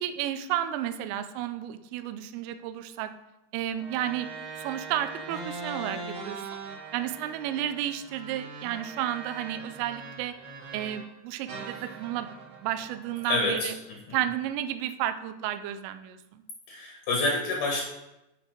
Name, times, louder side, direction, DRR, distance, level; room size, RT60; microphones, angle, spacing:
voice 1, 0.0-3.1 3.5-4.3 4.6-6.6 6.9-10.3 10.7-12.3 12.6-13.7 14.1-16.4, right 11 dB, 85° right, 10 dB, 2.5 m, -32 dB
sound 1, 3.7-11.1 11.5-13.9, right 4 dB, 70° right, 2.6 m, -41 dB
voice 2, 13.2-13.7 14.1-14.2 16.7-17.8, left 2 dB, 80° left, 0 dB, 1.8 m, -27 dB
9.8 x 4.6 x 5.1 m, 0.92 s
omnidirectional pair, 5.7 m